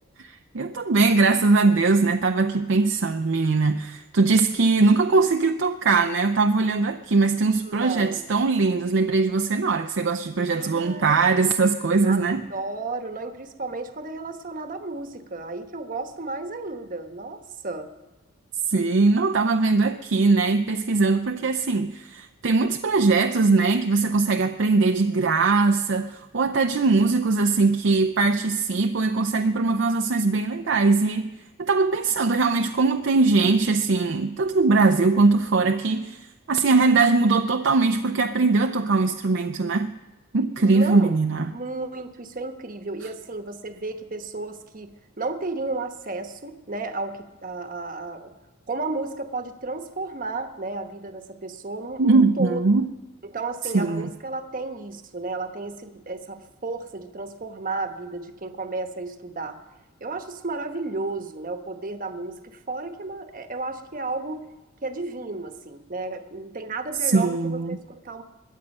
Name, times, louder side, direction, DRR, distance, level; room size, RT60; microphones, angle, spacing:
voice 1, 0.2-12.5 18.7-31.3 31.6-40.0 40.3-41.5 52.0-52.9 53.7-54.1 67.1-67.7, right 3 dB, 60° right, 6 dB, 0.6 m, -21 dB
voice 2, 7.6-8.2 10.5-11.3 12.0-17.9 40.7-41.2 41.5-44.9 45.2-48.3 48.7-52.6 53.2-59.6 60.0-64.4 64.8-68.2, right 3 dB, 40° right, 7 dB, 1.1 m, -33 dB
21.5 x 8.2 x 5.4 m, 1.1 s
head